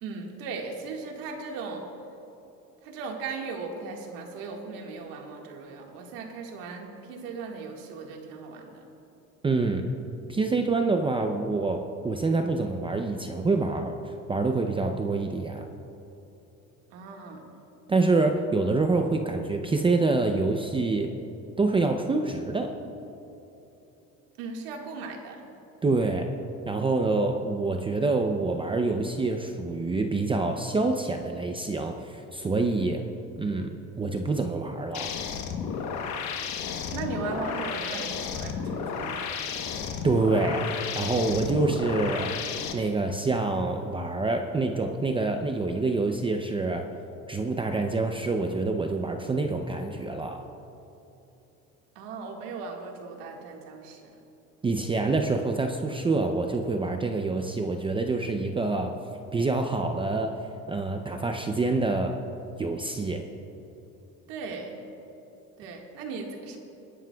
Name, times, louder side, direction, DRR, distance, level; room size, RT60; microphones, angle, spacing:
voice 1, 0.0-1.9 2.8-8.8 16.9-17.5 24.4-25.5 36.9-39.8 52.0-54.1 64.3-64.8 65.6-66.6, right 4 dB, 85° right, 1 dB, 1.8 m, -37 dB
voice 2, 9.4-9.8 10.3-15.7 17.9-21.1 21.6-22.7 25.8-26.3 26.7-33.0 33.4-35.1 40.0-42.4 42.7-46.9 47.3-50.4 54.6-58.9 59.3-60.4 60.7-62.2 62.6-63.2, right 3 dB, 15° right, 4 dB, 0.6 m, -26 dB
sound 1, 34.9-42.7, left 6 dB, 55° left, 1.1 m, -33 dB
21.5 x 11.0 x 2.3 m, 3.0 s
cardioid pair, 125°, 34 cm